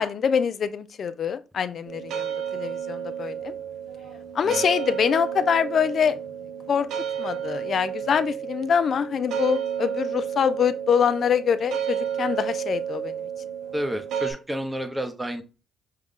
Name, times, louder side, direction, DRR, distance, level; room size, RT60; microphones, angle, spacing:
voice 1, 0.0-3.5 4.3-6.2 6.7-6.9 7.2-13.3, left 7 dB, 55° left, 0.5 m, -24 dB
sound 1, 1.8-14.3, right 8 dB, 85° right, 0.9 m, -31 dB
voice 2, 13.7-15.4, equal, 10° right, 0.8 m, -30 dB
5.6 x 2.4 x 3.7 m
cardioid pair, 90°, 0 cm